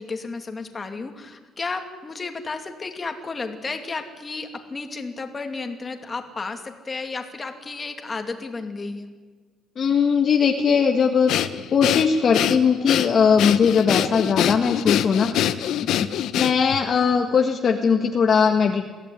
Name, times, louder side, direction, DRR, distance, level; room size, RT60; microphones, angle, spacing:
voice 1, 0.0-9.1, left 3 dB, 25° left, 5 dB, 2.7 m, -33 dB
voice 2, 9.8-11.3 11.7-15.3 16.3-18.9, left 6 dB, 45° left, 3 dB, 1.7 m, -19 dB
Breathing, 11.3-16.8, left 11 dB, 80° left, 1.1 m, -24 dB
23.0 x 16.0 x 10.0 m, 1.4 s
cardioid pair, 130°, 0 cm